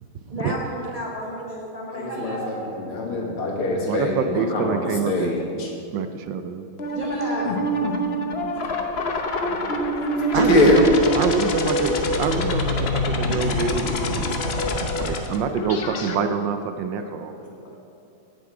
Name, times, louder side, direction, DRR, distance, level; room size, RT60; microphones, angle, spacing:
voice 1, 0.3-2.7 3.1-3.3 6.9-7.7 10.3-10.8, equal, 20° right, -4 dB, 1.4 m, -30 dB
voice 2, 1.9-5.7 9.4-9.5 10.0-10.1 10.5-10.8 12.9-13.1 14.4-14.6 15.0-15.2 16.1-16.4 17.0-17.5, left 2 dB, 85° left, -1 dB, 2.7 m, -24 dB
voice 3, 3.9-5.4 5.9-6.7 10.1-10.9 11.1-14.4 14.8-17.3, right 6 dB, 70° right, 9 dB, 1.2 m, -26 dB
sound 1, 6.8-16.1, left 1 dB, 70° left, 0.5 m, -25 dB
17.0 x 6.9 x 4.9 m, 2.6 s
omnidirectional pair, 2.3 m